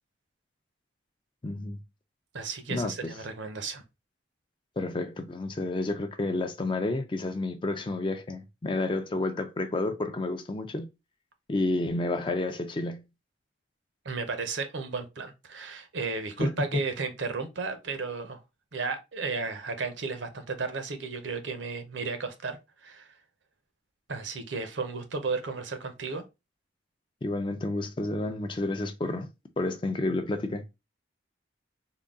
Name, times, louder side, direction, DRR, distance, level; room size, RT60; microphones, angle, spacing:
voice 1, 1.4-1.8 2.7-2.9 4.8-10.9 11.5-13.0 16.4-16.5 27.2-29.3 29.6-30.7, left 2 dB, 25° left, 0.4 m, -30 dB
voice 2, 2.3-3.8 14.0-18.4 18.7-23.1 24.1-26.2, right 4 dB, 70° right, 0.7 m, -34 dB
3.7 x 2.2 x 3.6 m
head